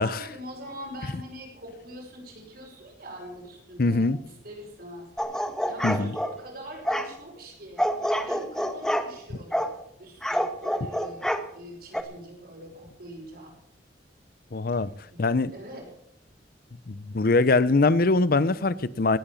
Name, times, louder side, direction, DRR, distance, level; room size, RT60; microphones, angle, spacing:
voice 1, 0.0-5.1 5.7-7.9 8.2-11.2 11.5-13.5 15.1-15.2 15.5-15.9, equal, 60° right, 5.9 m, -43 dB
voice 2, 3.8-4.2 5.8-6.1 14.5-14.9 15.2-15.5 16.9-19.2, left 3 dB, 55° left, 0.7 m, -22 dB
sound 1, 5.2-6.3 6.8-7.1 7.8-9.1 9.5-9.7 10.2-11.4 11.9-12.0, equal, 5° left, 1.3 m, -27 dB
18.0 x 9.0 x 7.0 m
head